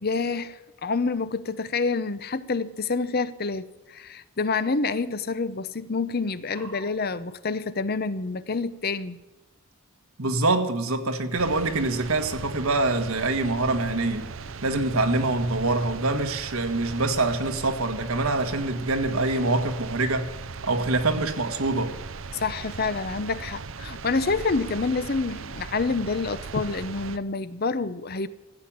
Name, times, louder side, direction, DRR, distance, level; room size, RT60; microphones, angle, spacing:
voice 1, 0.0-9.2 22.3-28.3, left 4 dB, 45° left, 0.7 m, -28 dB
voice 2, 6.6-6.9 10.2-14.3 14.6-20.3 20.7-21.9, right 2 dB, 80° right, 1.6 m, -25 dB
sound 1, 11.4-27.2, right 5 dB, 65° right, 0.7 m, -38 dB
15.5 x 8.6 x 7.4 m
head